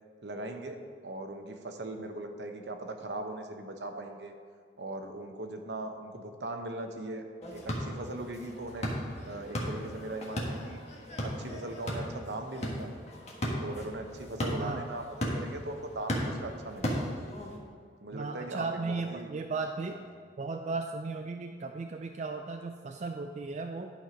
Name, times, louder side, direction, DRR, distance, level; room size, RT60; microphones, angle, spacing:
voice 1, 0.2-0.8 1.0-4.3 4.8-7.2 7.5-8.9 9.2-10.8 11.2-12.9 13.6-15.0 15.3-17.1 18.0-19.3, right 2 dB, 70° right, 5 dB, 0.9 m, -39 dB
sound 1, 7.4-17.6, equal, 35° left, 1.4 m, -36 dB
voice 2, 18.1-20.0 20.4-23.9, right 3 dB, 40° right, 5 dB, 0.3 m, -36 dB
11.0 x 4.5 x 5.1 m, 2.1 s
head